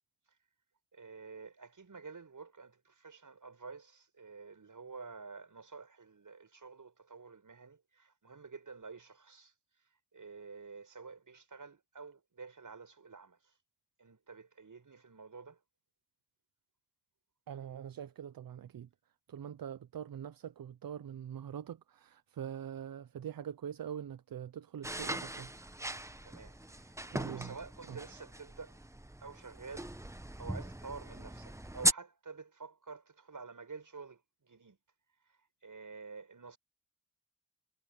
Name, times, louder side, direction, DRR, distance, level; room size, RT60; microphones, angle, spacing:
voice 1, 0.9-13.6 14.0-15.6 26.2-28.8 29.2-34.8 35.2-36.6, right 4 dB, 65° right, 7.8 m, -50 dB
voice 2, 17.5-18.9 19.3-25.6 27.1-27.5 27.9-28.0, right 9 dB, 85° right, 0.7 m, -43 dB
sound 1, 24.8-31.9, right 1 dB, 10° right, 1.0 m, -38 dB
cardioid pair, 60°, 34 cm